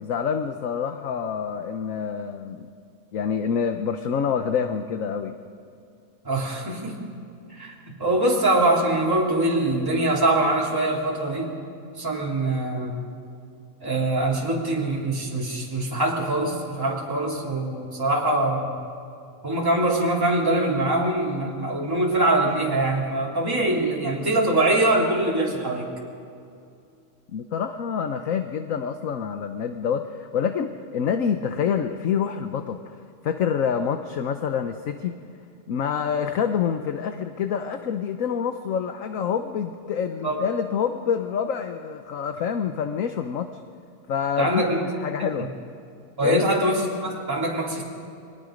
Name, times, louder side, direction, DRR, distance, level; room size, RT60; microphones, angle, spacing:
voice 1, 0.0-2.7 3.1-5.3 27.3-35.1 35.7-43.5 44.1-45.5 46.2-46.4, left 7 dB, 65° left, 7 dB, 1.2 m, -27 dB
voice 2, 6.2-7.0 7.6-11.5 11.9-13.0 13.8-18.7 19.4-25.9 40.2-40.4 44.4-44.8 45.2-45.5 46.2-47.8, right 1 dB, 15° right, -4 dB, 3.0 m, -23 dB
30.0 x 22.5 x 5.2 m, 2.5 s
omnidirectional pair, 1.6 m